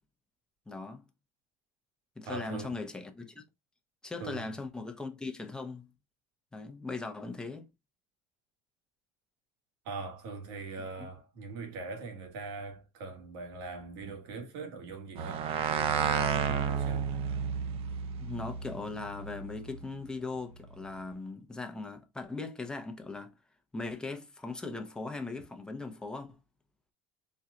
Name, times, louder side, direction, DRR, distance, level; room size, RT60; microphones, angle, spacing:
voice 1, 0.7-1.0 2.2-3.4 4.0-5.9 6.5-7.7 11.0-11.1 18.2-23.3 23.7-26.4, left 3 dB, 5° left, 0.7 m, -39 dB
voice 2, 2.2-2.8 4.2-4.5 9.8-17.1, right 3 dB, 85° right, 1.6 m, -42 dB
sound 1, 15.2-19.8, right 7 dB, 50° right, 0.7 m, -32 dB
4.3 x 2.3 x 3.7 m
cardioid pair, 135°, 12 cm